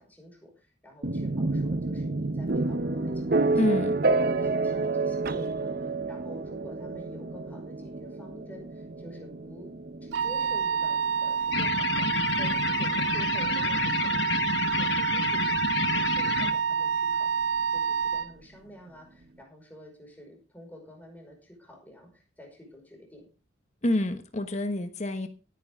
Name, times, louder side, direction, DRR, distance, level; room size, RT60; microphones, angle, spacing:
voice 1, 0.0-3.8 4.2-5.7 6.1-9.7 10.0-17.4 17.7-23.3, equal, 10° left, 1 dB, 5.2 m, -49 dB
sound 1, 1.0-14.8, right 3 dB, 50° right, 0.9 m, -30 dB
voice 2, 3.6-3.9 23.8-25.3, left 1 dB, 35° left, 8 dB, 1.2 m, -27 dB
Wind instrument woodwind instrument, 10.1-18.3, right 6 dB, 80° right, 0.5 m, -28 dB
sound 2, 11.5-16.5, left 5 dB, 65° left, 1.1 m, -29 dB
17.5 x 9.6 x 3.6 m, 0.32 s
head